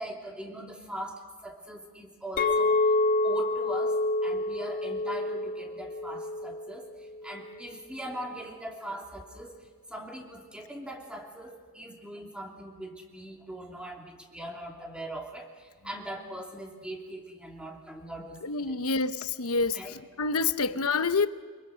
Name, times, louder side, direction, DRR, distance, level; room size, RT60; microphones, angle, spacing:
voice 1, 0.0-2.9 3.2-3.9 4.2-6.9 7.2-9.5 9.9-18.4 18.7-18.8 19.7-19.9, right 1 dB, 5° right, 3.0 m, -41 dB
Chink clink, 2.4-7.6, left 2 dB, 40° left, 1.8 m, -28 dB
voice 2, 18.4-19.8 20.2-21.3, left 4 dB, 85° left, 0.9 m, -27 dB
26.0 x 23.0 x 6.3 m
head